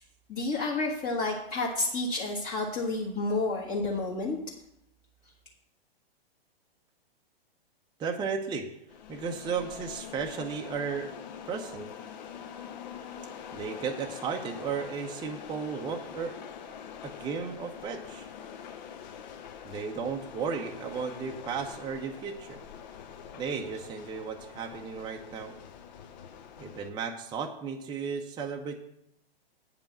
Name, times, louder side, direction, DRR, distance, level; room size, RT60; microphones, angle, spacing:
voice 1, 0.3-4.4, left 2 dB, 25° left, -3 dB, 1.5 m, -30 dB
voice 2, 8.0-8.7 9.1-11.2 11.5-11.9 13.5-16.4 17.0-18.3 19.6-22.6 23.3-25.5 26.6-28.8, right 6 dB, 15° right, 2 dB, 0.8 m, -34 dB
sound 1, 8.9-26.9, left 8 dB, 45° left, 1.1 m, -44 dB
8.6 x 5.4 x 7.2 m, 0.77 s
figure-of-eight pair, 110°, 31 cm